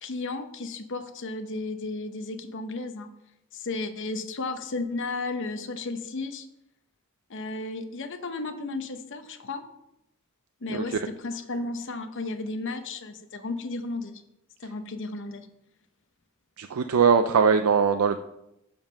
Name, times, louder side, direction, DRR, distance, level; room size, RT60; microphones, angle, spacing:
voice 1, 0.0-3.1 3.5-6.5 7.3-9.6 10.6-14.2 14.6-15.5, left 3 dB, 60° left, 8 dB, 0.8 m, -34 dB
voice 2, 16.6-18.2, right 6 dB, 85° right, 8 dB, 0.5 m, -21 dB
7.2 x 5.3 x 6.3 m, 0.84 s
head